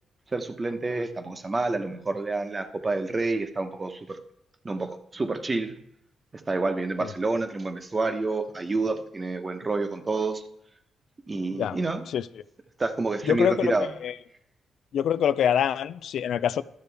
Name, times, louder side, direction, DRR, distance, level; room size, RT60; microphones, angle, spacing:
voice 1, 0.3-4.2 4.6-5.8 6.5-10.4 11.3-12.0 12.8-13.9, right 3 dB, 35° right, 8 dB, 1.0 m, -28 dB
voice 2, 13.3-13.7 14.0-14.1 14.9-16.6, left 9 dB, 75° left, 15 dB, 0.3 m, -24 dB
12.5 x 6.6 x 3.5 m, 0.78 s
supercardioid pair, 60°, 0 cm